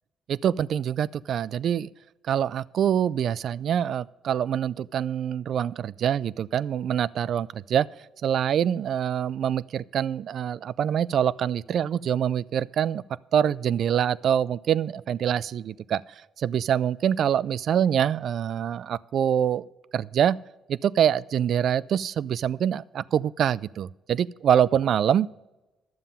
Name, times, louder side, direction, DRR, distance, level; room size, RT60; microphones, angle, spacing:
voice 1, 0.3-1.9 2.3-7.9 8.2-13.0 13.3-16.0 16.4-20.4 20.7-25.3, right 9 dB, 65° right, 22 dB, 0.3 m, -25 dB
12.0 x 7.3 x 5.5 m, 1.0 s
cardioid pair, 90°, 0 cm